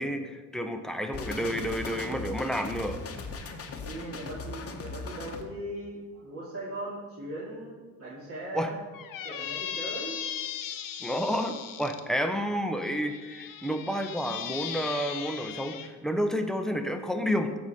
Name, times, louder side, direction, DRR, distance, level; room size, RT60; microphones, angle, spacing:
voice 1, 0.0-3.0 8.5-8.7 11.0-17.6, equal, ahead, 6 dB, 0.9 m, -30 dB
sound 1, 1.1-5.4, left 4 dB, 40° left, 1.2 m, -38 dB
voice 2, 3.8-8.8 9.2-10.3, right 1 dB, 40° right, -8 dB, 2.6 m, -39 dB
Squeak, 8.9-12.0 12.8-15.9, left 9 dB, 65° left, 0.9 m, -38 dB
14.0 x 4.9 x 4.3 m, 1.3 s
cardioid pair, 85°, 36 cm